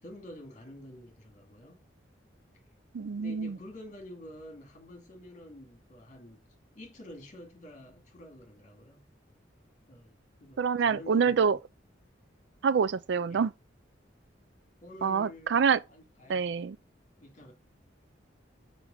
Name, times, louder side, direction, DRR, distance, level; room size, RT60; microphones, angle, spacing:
voice 1, 0.0-1.8 3.2-6.4 6.7-9.1 9.9-11.6 13.3-13.4 14.8-15.6 15.9-16.6 17.2-17.5, left 1 dB, 45° left, 2.0 m, -48 dB
voice 2, 2.9-3.6 10.6-11.6 12.6-13.5 15.0-15.8 16.3-16.8, right 6 dB, 70° right, 0.4 m, -26 dB
6.4 x 4.5 x 3.8 m
head